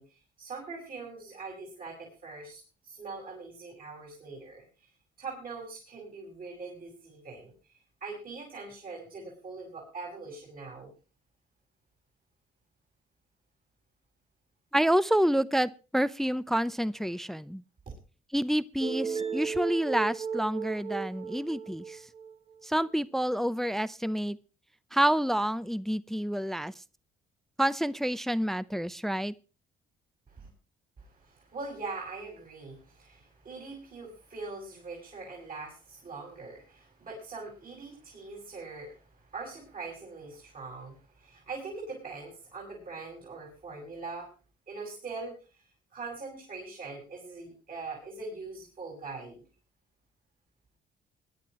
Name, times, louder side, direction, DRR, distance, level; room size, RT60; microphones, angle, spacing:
voice 1, 0.0-4.6 5.2-7.5 8.0-10.9 17.9-18.0 30.3-30.5 31.0-44.3 44.7-45.6 45.9-49.4, right 3 dB, 45° right, -1 dB, 6.1 m, -42 dB
voice 2, 14.7-17.6 18.3-22.0 22.6-24.4 24.9-26.7 27.6-29.3, equal, ahead, 17 dB, 0.6 m, -28 dB
sound 1, 18.8-22.5, right 6 dB, 30° right, 1.5 m, -35 dB
21.5 x 11.0 x 3.1 m, 0.33 s
cardioid pair, 90°, 20 cm